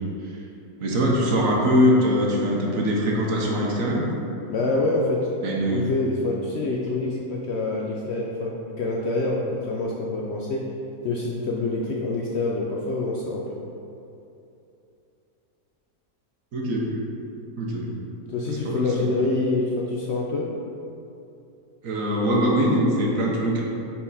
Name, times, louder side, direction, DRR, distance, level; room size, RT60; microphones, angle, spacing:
voice 1, 0.8-4.1 5.4-5.9 16.5-16.9 17.6-17.9 18.5-18.8 21.8-23.6, equal, 65° right, -2 dB, 1.3 m, -22 dB
voice 2, 4.5-5.3 5.6-10.7 11.0-13.6 18.3-20.5, left 2 dB, 65° left, -3 dB, 0.7 m, -26 dB
5.7 x 4.2 x 4.1 m, 2.7 s
omnidirectional pair, 1.6 m